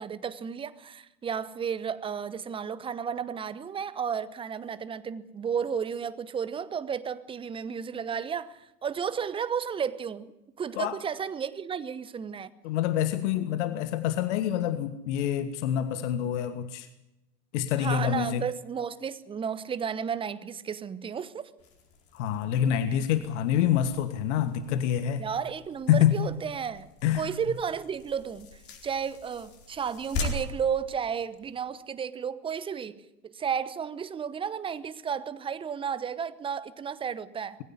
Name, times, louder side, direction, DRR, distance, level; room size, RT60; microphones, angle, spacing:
voice 1, 0.0-10.3 10.6-12.5 17.8-21.5 25.2-26.9 27.1-37.6, right 7 dB, 10° right, 0.9 m, -33 dB
voice 2, 12.6-16.9 17.5-18.4 22.1-25.2 25.9-26.2 27.0-27.3, left 10 dB, 45° left, 1.6 m, -26 dB
sound 1, 21.6-31.7, left 2 dB, 30° left, 4.5 m, -41 dB
21.5 x 16.0 x 10.0 m
figure-of-eight pair, 100°, 48 cm